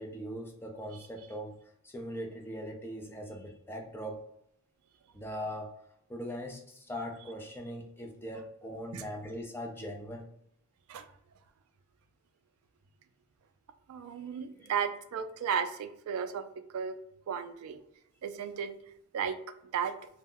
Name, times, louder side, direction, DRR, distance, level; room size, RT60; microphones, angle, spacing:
voice 1, 0.0-1.5 1.8-4.2 5.1-5.7 6.1-10.3 14.6-14.7, equal, 10° left, 1 dB, 0.4 m, -40 dB
voice 2, 13.9-16.4 16.7-17.0 17.3-17.8 18.2-18.7 19.1-19.4 19.7-19.9, right 7 dB, 75° right, 8 dB, 0.3 m, -34 dB
2.1 x 2.0 x 3.7 m, 0.72 s
head